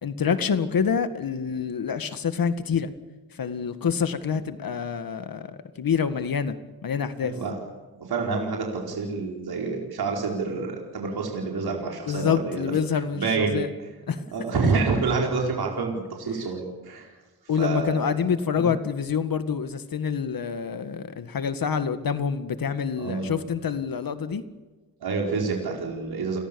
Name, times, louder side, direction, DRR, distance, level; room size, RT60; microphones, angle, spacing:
voice 1, 0.0-2.9 3.3-6.5 6.8-7.4 12.1-13.7 14.1-14.2 17.5-24.4, left 6 dB, 65° left, 10 dB, 1.9 m, -27 dB
voice 2, 7.2-7.6 8.0-12.7 13.1-13.6 14.3-17.1 17.6-18.3 18.5-18.7 23.0-23.4 25.0-26.4, right 4 dB, 75° right, 0 dB, 4.8 m, -28 dB
29.5 x 22.0 x 7.1 m, 1.3 s
wide cardioid pair, 100°, 38 cm